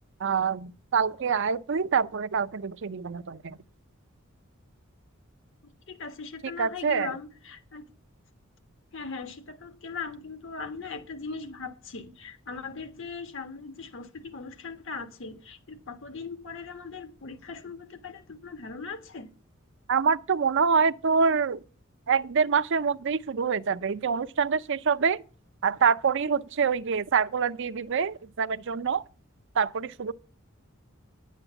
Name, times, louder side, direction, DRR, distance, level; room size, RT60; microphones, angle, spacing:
voice 1, 0.2-3.6 6.6-7.1 19.9-21.6 22.1-25.2 25.6-29.0 29.6-30.1, right 6 dB, 60° right, 0.5 m, -26 dB
voice 2, 5.9-7.9 8.9-19.3, left 4 dB, 65° left, 1.5 m, -39 dB
10.0 x 8.3 x 6.9 m
head